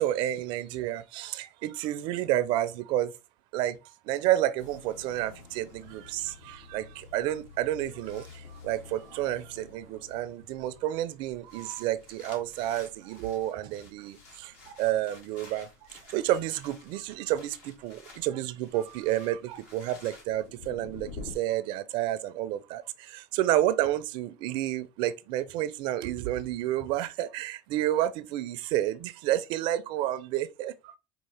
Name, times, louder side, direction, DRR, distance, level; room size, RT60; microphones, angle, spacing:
voice 1, 0.0-3.1 3.5-3.8 4.0-31.0, right 13 dB, 60° right, 0.4 m, -30 dB
Content warning, 4.6-21.4, left 4 dB, 70° left, 1.8 m, -50 dB
4.6 x 2.4 x 3.3 m
supercardioid pair, 100°, 9 cm